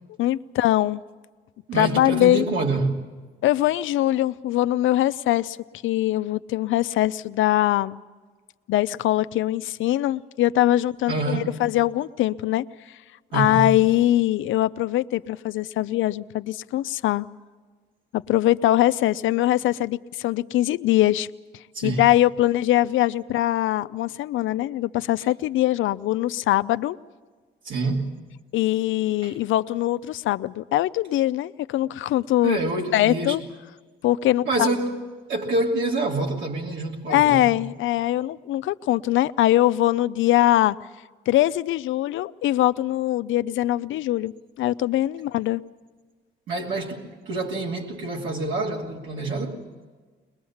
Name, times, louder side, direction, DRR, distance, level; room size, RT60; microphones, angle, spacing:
voice 1, 0.2-1.0 1.7-2.4 3.4-5.6 5.8-8.0 8.7-12.6 13.3-17.3 18.1-21.3 21.8-27.0 28.5-32.6 32.9-33.4 34.0-34.7 37.1-40.8 41.3-44.3 44.6-45.6, left 14 dB, 80° left, 0.6 m, -22 dB
voice 2, 1.7-3.0 11.1-11.6 13.3-13.7 21.7-22.1 27.6-28.1 29.2-29.3 32.4-33.4 34.5-37.6 46.5-49.6, right 2 dB, 75° right, 2.9 m, -27 dB
22.0 x 21.0 x 7.2 m
cardioid pair, 90°, 20 cm